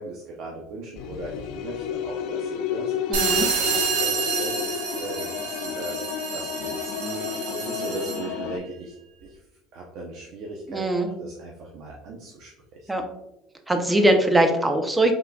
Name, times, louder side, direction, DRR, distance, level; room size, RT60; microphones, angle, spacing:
voice 1, 0.0-2.9 3.3-6.0 6.3-9.0 9.2-9.4 9.7-12.9, right 2 dB, 55° right, -1 dB, 0.7 m, -38 dB
sound 1, 1.0-8.6, left 8 dB, 65° left, 0.3 m, -31 dB
voice 2, 3.1-3.5 10.7-11.1 12.9-13.0 13.7-15.1, right 1 dB, 10° right, 6 dB, 0.5 m, -21 dB
sound 2, 3.1-8.3, right 6 dB, 85° right, 1.1 m, -28 dB
5.7 x 3.7 x 2.3 m, 0.89 s
cardioid pair, 155°, 0 cm